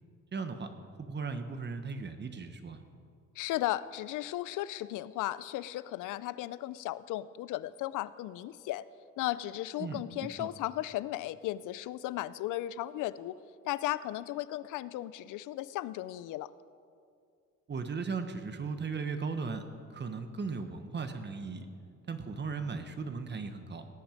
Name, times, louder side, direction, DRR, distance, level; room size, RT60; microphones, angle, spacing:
voice 1, 0.3-0.7 1.0-2.8 9.8-10.0 10.4-10.5 17.7-19.6 19.9-21.7 22.1-23.9, right 4 dB, 35° right, 8 dB, 1.2 m, -37 dB
voice 2, 3.4-8.8 9.2-13.3 13.6-16.5, left 15 dB, 85° left, 17 dB, 0.5 m, -35 dB
18.0 x 9.0 x 5.2 m, 2.4 s
cardioid pair, 90°, 30 cm